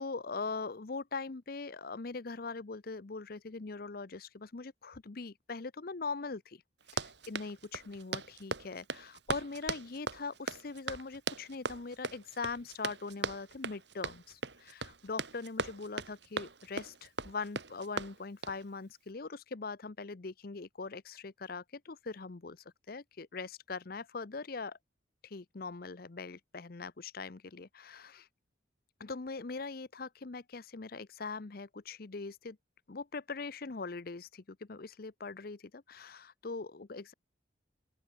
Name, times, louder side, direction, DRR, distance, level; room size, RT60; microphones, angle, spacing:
voice 1, 0.0-6.6 6.9-24.8 25.2-28.3 29.0-32.6 32.9-37.1, left 4 dB, 50° left, 0.7 m, -41 dB
Run, 6.8-18.6, right 4 dB, 65° right, 4.0 m, -39 dB
open air
head